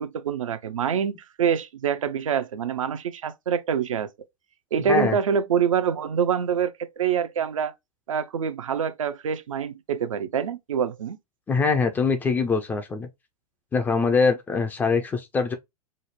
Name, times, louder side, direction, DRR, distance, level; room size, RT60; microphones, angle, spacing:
voice 1, 0.0-4.1 4.7-7.7 8.1-11.2, right 7 dB, 60° right, 0.5 m, -26 dB
voice 2, 11.5-13.1 13.7-15.5, left 4 dB, 10° left, 0.4 m, -23 dB
5.0 x 2.0 x 2.8 m
figure-of-eight pair, 105°, 19 cm